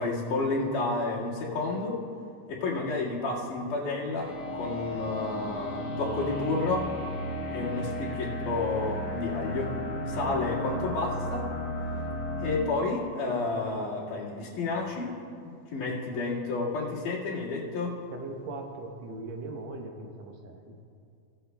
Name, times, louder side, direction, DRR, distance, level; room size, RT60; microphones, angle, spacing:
voice 1, 0.0-2.0 2.5-6.9 7.5-11.5 12.4-18.0, left 3 dB, 85° left, -6 dB, 3.5 m, -31 dB
sound 1, 4.2-12.6, left 1 dB, 45° left, 3.2 m, -34 dB
voice 2, 18.1-20.8, right 3 dB, 70° right, 2 dB, 1.9 m, -40 dB
17.5 x 12.5 x 2.2 m, 2.3 s
omnidirectional pair, 3.6 m